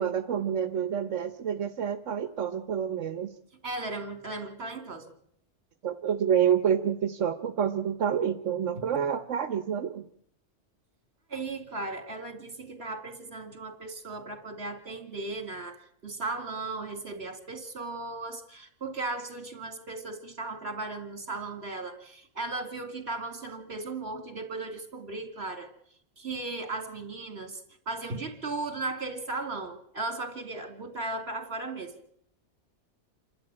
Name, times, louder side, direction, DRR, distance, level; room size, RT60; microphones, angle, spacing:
voice 1, 0.0-3.3 5.8-10.0, right 8 dB, 85° right, 9 dB, 1.4 m, -28 dB
voice 2, 3.6-5.1 11.3-25.7 26.2-27.6 27.9-31.9, right 3 dB, 55° right, 6 dB, 2.9 m, -36 dB
28.0 x 12.5 x 8.9 m, 0.70 s
omnidirectional pair, 1.2 m